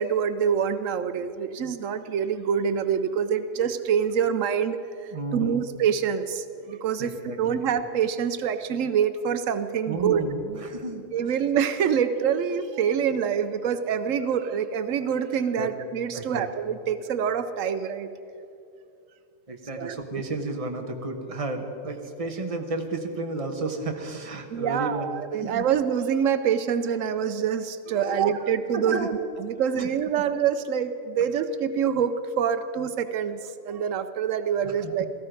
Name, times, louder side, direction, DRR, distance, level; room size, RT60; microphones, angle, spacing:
voice 1, 0.0-7.1 7.4-10.2 11.1-18.1 19.8-20.0 24.5-35.1, right 7 dB, 85° right, 10 dB, 1.0 m, -26 dB
voice 2, 5.1-5.6 7.0-7.6 9.9-11.0 15.6-15.7 16.1-16.5 19.5-25.1 25.3-25.6 27.9-28.4 28.7-29.2 29.7-29.9 34.6-34.9, right 3 dB, 30° right, 4 dB, 1.2 m, -32 dB
17.5 x 14.0 x 5.1 m, 2.6 s
omnidirectional pair, 1.3 m